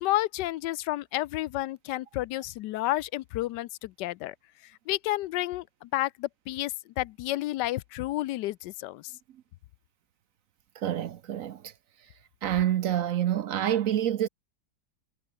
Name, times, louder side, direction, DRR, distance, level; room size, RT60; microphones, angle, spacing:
voice 1, 0.0-4.3 4.6-9.1, left 16 dB, 85° left, 1.2 m, -31 dB
voice 2, 10.8-11.7 12.4-14.3, right 11 dB, 65° right, 0.9 m, -27 dB
omnidirectional pair, 1.8 m